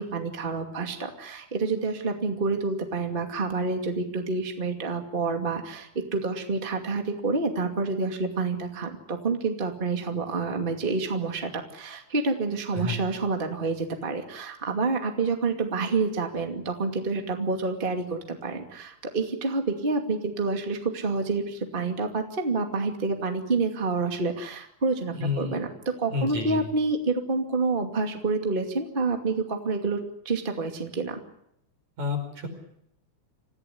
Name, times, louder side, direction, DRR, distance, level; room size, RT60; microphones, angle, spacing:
voice 1, 0.0-25.7 26.0-31.2, right 3 dB, 20° right, 4 dB, 2.3 m, -28 dB
voice 2, 25.1-25.5 26.1-26.6 32.0-32.5, left 4 dB, 70° right, 4 dB, 6.6 m, -29 dB
26.5 x 16.0 x 9.9 m, 0.76 s
omnidirectional pair, 3.5 m